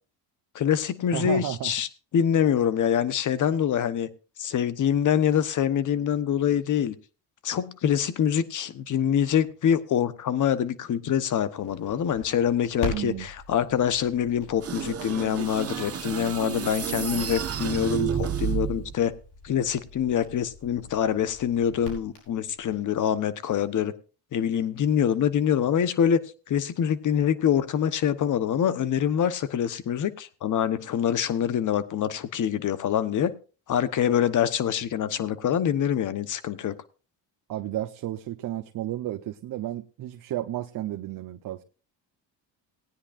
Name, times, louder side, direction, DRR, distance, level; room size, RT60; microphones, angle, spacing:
voice 1, 0.5-1.9 2.1-4.1 4.4-6.9 7.4-19.1 19.4-23.9 24.3-26.2 26.5-33.3 33.7-36.7, left 9 dB, 45° left, 1.0 m, -25 dB
voice 2, 1.1-1.7 12.9-13.3 37.5-41.6, right 13 dB, 50° right, 0.8 m, -32 dB
Crackle, 11.6-22.8, left 2 dB, 70° left, 5.6 m, -43 dB
sound 1, 14.6-19.0, right 8 dB, 35° right, 1.2 m, -30 dB
19.0 x 9.9 x 2.5 m
cardioid pair, 105°, 42 cm